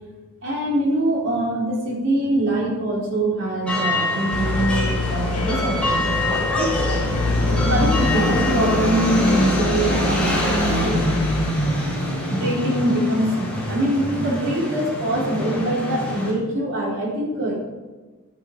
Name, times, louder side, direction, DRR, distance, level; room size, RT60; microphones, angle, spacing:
voice 1, 0.4-6.7 7.5-11.4 12.3-17.6, right 1 dB, 60° right, -4 dB, 3.8 m, -24 dB
sound 1, 3.7-16.3, left 1 dB, 5° left, 3.5 m, -24 dB
sound 2, 4.3-11.5, left 3 dB, 90° left, 1.4 m, -26 dB
12.0 x 8.7 x 5.4 m, 1.3 s
head